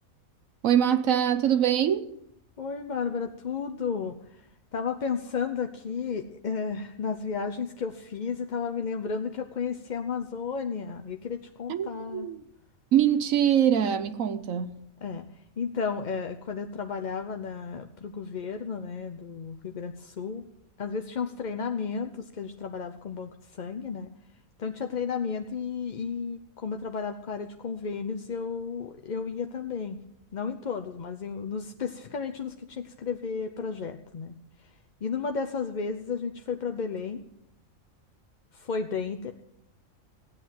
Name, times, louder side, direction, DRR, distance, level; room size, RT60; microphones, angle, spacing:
voice 1, 0.6-2.1 11.7-12.4 12.9-14.8, right 10 dB, 80° right, 1.2 m, -24 dB
voice 2, 2.6-12.3 15.0-15.3 15.6-20.4 20.8-24.1 24.6-30.0 30.3-34.4 34.6-34.7 35.0-37.2 38.5-39.3, left 5 dB, 45° left, 0.7 m, -33 dB
16.0 x 9.2 x 7.5 m
omnidirectional pair, 1.4 m